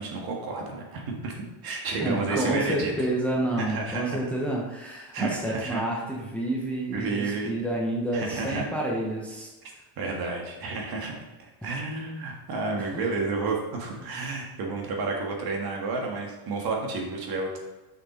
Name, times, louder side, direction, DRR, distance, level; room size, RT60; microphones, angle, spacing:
voice 1, 0.0-1.4 1.6-2.9 3.6-4.2 5.1-5.8 6.9-7.5 8.1-8.6 9.6-11.1 11.4-17.6, right 3 dB, 50° right, 1 dB, 1.7 m, -31 dB
voice 2, 1.9-9.5 11.6-11.7 12.8-13.1 14.0-14.2, right 1 dB, 5° left, -3 dB, 1.0 m, -29 dB
6.5 x 5.8 x 3.8 m, 1.2 s
cardioid pair, 140°, 47 cm